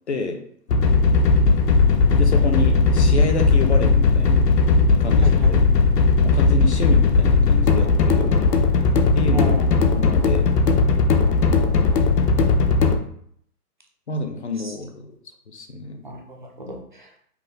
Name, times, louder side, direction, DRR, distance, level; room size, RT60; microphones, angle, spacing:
voice 1, 0.1-0.4 2.2-4.5 5.0-5.6 6.2-8.4 9.1-9.5 9.9-10.5 14.1-15.2 15.5-16.0, left 3 dB, 45° left, 5 dB, 0.5 m, -28 dB
sound 1, 0.7-13.0, left 4 dB, 90° left, 0.8 m, -17 dB
voice 2, 9.3-9.7 14.6-14.7 16.0-17.2, right 1 dB, 35° right, 1 dB, 0.5 m, -33 dB
5.6 x 2.1 x 3.8 m, 0.65 s
hypercardioid pair, 165°, 47 cm